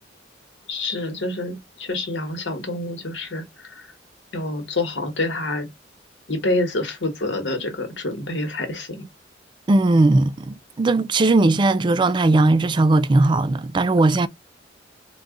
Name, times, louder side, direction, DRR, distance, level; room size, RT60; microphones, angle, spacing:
voice 1, 0.7-3.9 4.3-5.7 6.3-9.0, left 2 dB, 65° left, 1.2 m, -27 dB
voice 2, 9.7-14.3, right 2 dB, 25° right, 0.3 m, -18 dB
3.9 x 2.3 x 3.6 m
head